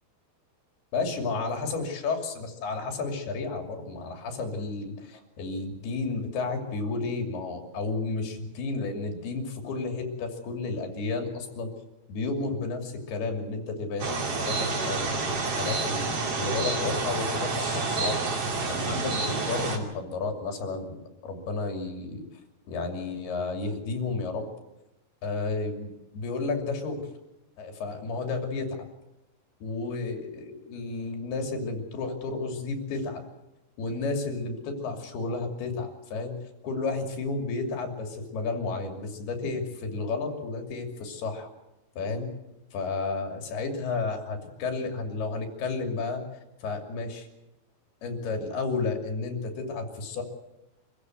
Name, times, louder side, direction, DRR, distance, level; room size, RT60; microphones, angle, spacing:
voice 1, 0.9-11.7 12.1-16.1 16.4-18.3 18.7-22.2 22.7-24.5 25.2-27.0 27.6-28.8 29.6-33.2 33.8-36.4 36.6-41.5 42.0-42.3 42.7-46.2 46.6-47.3 48.0-50.2, left 3 dB, 85° left, 4 dB, 4.8 m, -32 dB
sound 1, 14.0-19.8, right 3 dB, 40° right, 3.2 m, -29 dB
26.0 x 15.5 x 7.8 m, 0.95 s
omnidirectional pair, 4.4 m